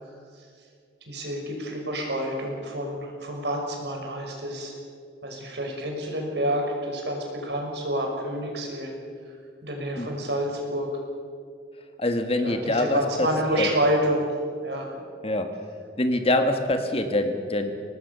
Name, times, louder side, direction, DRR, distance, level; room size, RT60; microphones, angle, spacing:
voice 1, 1.1-4.7 5.2-8.9 9.6-10.9 12.4-14.3 14.6-14.9, right 1 dB, 80° right, 1 dB, 5.9 m, -28 dB
voice 2, 12.0-13.3 13.6-13.7 15.2-15.5 16.0-17.7, left 1 dB, 35° left, 6 dB, 1.8 m, -24 dB
24.5 x 19.0 x 6.9 m, 2.1 s
head